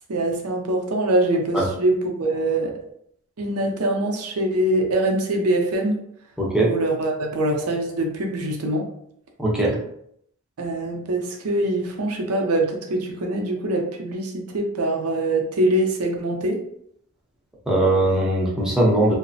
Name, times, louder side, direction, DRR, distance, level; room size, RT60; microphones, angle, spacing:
voice 1, 0.1-2.8 3.4-6.0 6.6-8.9 10.6-16.6, right 1 dB, 80° right, 2 dB, 0.6 m, -23 dB
voice 2, 6.4-6.7 9.4-9.8 17.7-19.2, right 1 dB, 5° right, -4 dB, 0.6 m, -20 dB
2.9 x 2.0 x 2.6 m, 0.70 s
head